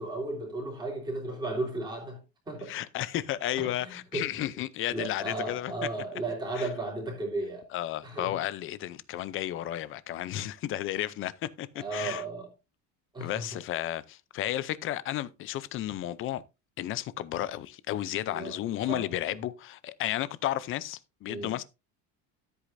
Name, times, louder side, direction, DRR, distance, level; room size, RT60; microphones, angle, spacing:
voice 1, 0.0-2.8 3.6-4.5 4.9-7.7 8.0-8.3 11.7-12.5 13.1-13.6 18.3-19.1 21.3-21.6, right 2 dB, 10° right, 3.3 m, -35 dB
voice 2, 2.7-5.7 6.6-6.7 7.7-12.2 13.2-16.4 16.8-21.6, left 13 dB, 35° left, 0.5 m, -33 dB
13.5 x 8.3 x 2.6 m
cardioid pair, 180°, 38 cm